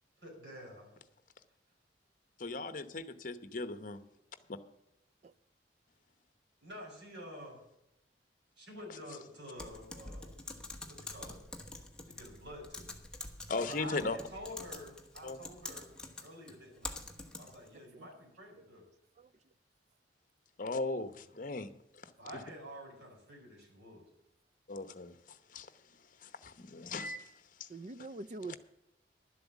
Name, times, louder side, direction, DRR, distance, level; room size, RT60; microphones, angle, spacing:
voice 1, 0.2-0.9 6.6-7.6 8.6-10.5 10.8-11.4 12.1-12.9 13.6-15.9 16.2-17.0 17.4-18.8 22.2-24.0, equal, 90° right, 5.0 m, -49 dB
voice 2, 2.4-4.0 13.5-14.2 15.2-15.4 20.6-21.7 24.7-25.7 26.2-27.3 27.6-27.7, left 3 dB, 45° left, 0.9 m, -38 dB
Typing, 9.6-17.7, left 2 dB, 5° left, 1.2 m, -46 dB
voice 3, 17.7-18.1 18.6-18.7 19.2-19.3 27.7-28.6, right 3 dB, 40° right, 0.4 m, -45 dB
11.5 x 7.8 x 7.1 m
head